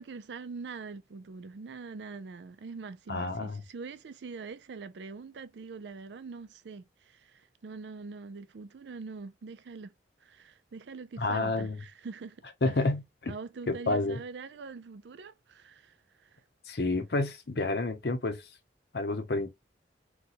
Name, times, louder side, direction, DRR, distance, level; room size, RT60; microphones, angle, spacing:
voice 1, 0.0-9.9 10.2-12.4 13.3-16.4, right 4 dB, 75° right, 0.4 m, -44 dB
voice 2, 3.1-3.6 11.2-11.8 12.6-13.3 13.7-14.2 16.7-18.4 18.9-19.5, left 2 dB, 60° left, 0.7 m, -29 dB
4.0 x 2.3 x 2.8 m
head